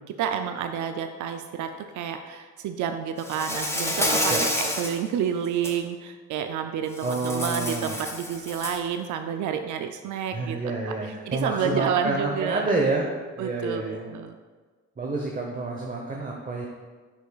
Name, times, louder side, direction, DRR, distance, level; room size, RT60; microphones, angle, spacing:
voice 1, 0.2-10.6 10.9-12.7 13.4-14.4, right 8 dB, 75° right, 7 dB, 0.5 m, -30 dB
Insect, 3.2-5.0 5.4-5.7 7.0-8.9, left 1 dB, 10° left, 1.2 m, -28 dB
voice 2, 7.0-8.0 10.3-14.2 15.0-16.7, right 3 dB, 25° right, 0 dB, 1.0 m, -28 dB
9.8 x 6.5 x 2.4 m, 1.4 s
cardioid pair, 90°, 30 cm